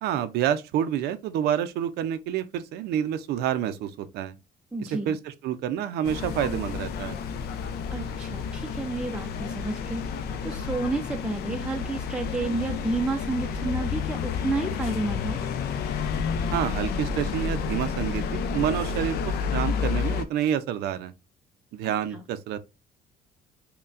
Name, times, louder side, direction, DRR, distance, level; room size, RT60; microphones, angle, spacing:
voice 1, 0.0-4.3 4.8-7.2 16.5-21.1 21.7-22.6, right 10 dB, 75° right, 0.5 m, -28 dB
voice 2, 4.7-5.2 7.9-10.0 10.4-15.4 22.1-22.2, right 3 dB, 5° right, 0.4 m, -31 dB
sound 1, 6.0-20.3, left 6 dB, 70° left, 0.5 m, -30 dB
5.5 x 2.2 x 2.4 m
cardioid pair, 110°, 17 cm